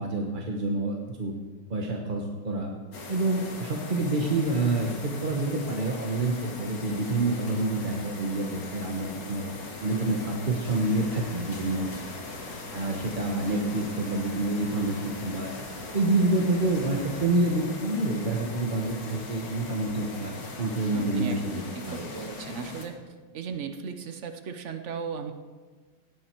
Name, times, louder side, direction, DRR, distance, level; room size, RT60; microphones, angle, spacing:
voice 1, 0.0-1.3 1.7-2.7 3.1-9.4 9.8-11.9 12.7-15.0 15.2-15.5 15.9-20.3 20.6-22.1, right 2 dB, 35° right, 1 dB, 0.9 m, -27 dB
sound 1, 2.9-22.9, left 3 dB, 55° left, 2.3 m, -40 dB
sound 2, 10.4-17.3, left 1 dB, 40° left, 4.1 m, -46 dB
voice 2, 20.9-23.0 23.3-25.3, right 6 dB, 75° right, 7 dB, 0.6 m, -36 dB
17.5 x 11.0 x 4.6 m, 1.4 s
omnidirectional pair, 2.4 m